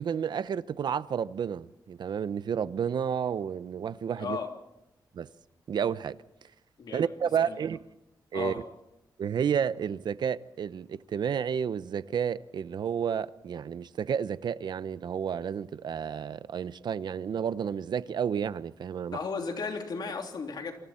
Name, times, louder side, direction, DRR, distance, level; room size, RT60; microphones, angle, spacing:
voice 1, 0.0-4.4 5.1-5.3 5.7-6.2 6.9-7.8 8.3-8.5 9.2-19.2, right 7 dB, 65° right, 0.7 m, -31 dB
voice 2, 4.2-4.5 6.8-7.1 7.5-7.6 8.3-8.6 19.1-20.8, left 5 dB, 60° left, 3.2 m, -34 dB
28.0 x 25.0 x 4.4 m
wide cardioid pair, 135°, 8 cm